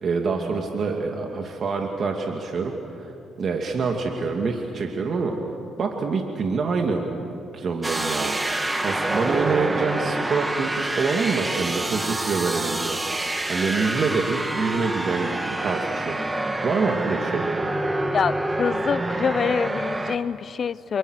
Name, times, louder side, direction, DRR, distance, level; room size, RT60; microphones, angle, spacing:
voice 1, 0.0-3.1 3.4-5.4 5.8-7.0 7.5-8.4 8.8-13.0 13.5-16.2 16.6-17.4, right 4 dB, 50° right, 2 dB, 2.5 m, -26 dB
sound 1, 7.8-20.2, right 2 dB, 15° right, 1.8 m, -27 dB
voice 2, 18.1-21.0, left 6 dB, 50° left, 18 dB, 0.6 m, -25 dB
28.5 x 28.0 x 6.6 m, 2.9 s
cardioid pair, 90°, 0 cm